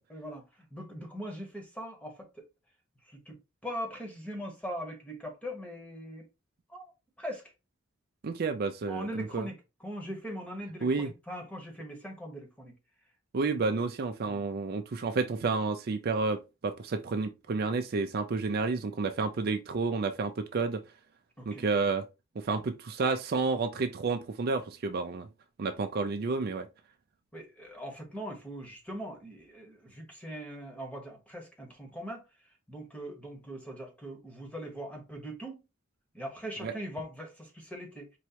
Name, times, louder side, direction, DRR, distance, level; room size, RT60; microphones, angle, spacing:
voice 1, 0.1-2.4 3.0-6.3 6.7-6.9 7.2-7.5 8.9-12.8 14.2-14.4 21.4-21.7 27.3-32.3 32.7-35.6 36.1-38.1, equal, 5° left, 1.1 m, -41 dB
voice 2, 8.2-9.5 10.8-11.1 13.3-20.8 21.5-22.0 22.4-25.3 25.6-26.7 36.6-36.7, right 4 dB, 50° right, 0.4 m, -30 dB
4.6 x 3.1 x 2.8 m
head